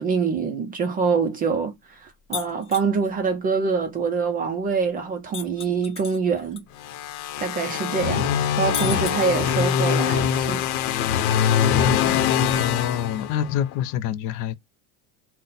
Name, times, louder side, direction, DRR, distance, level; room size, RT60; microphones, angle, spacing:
voice 1, 0.0-6.6 7.4-10.6, right 5 dB, 20° right, 0.3 m, -25 dB
sound 1, 2.3-2.9 5.3-6.6 6.9-7.0 8.7-9.7, left 6 dB, 15° left, 0.8 m, -33 dB
sound 2, 6.8-13.7, left 8 dB, 90° left, 0.7 m, -23 dB
voice 2, 12.6-14.5, left 10 dB, 50° left, 0.5 m, -26 dB
4.0 x 2.1 x 3.8 m
supercardioid pair, 135°, 42 cm